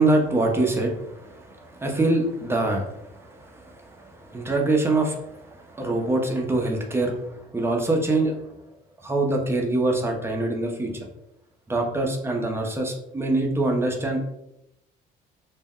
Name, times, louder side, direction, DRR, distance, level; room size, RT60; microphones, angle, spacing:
voice 1, 0.0-8.4 9.0-10.9 11.7-14.3, right 2 dB, 15° right, 1 dB, 0.5 m, -24 dB
2.2 x 2.1 x 3.5 m, 0.82 s
cardioid pair, 110°, 17 cm